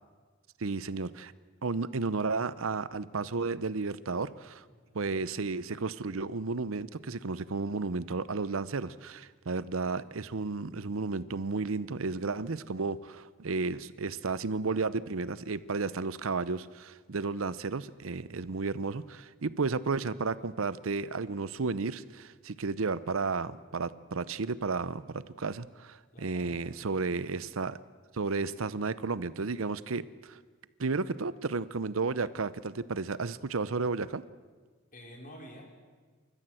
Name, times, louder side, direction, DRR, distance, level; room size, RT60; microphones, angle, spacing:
voice 1, 0.6-1.3 1.6-4.6 4.9-27.8 28.1-30.4 30.8-34.2, right 4 dB, 75° right, 16 dB, 0.7 m, -33 dB
voice 2, 26.1-26.6 34.9-35.7, equal, 40° left, 2 dB, 4.1 m, -49 dB
28.5 x 14.0 x 7.7 m, 1.4 s
head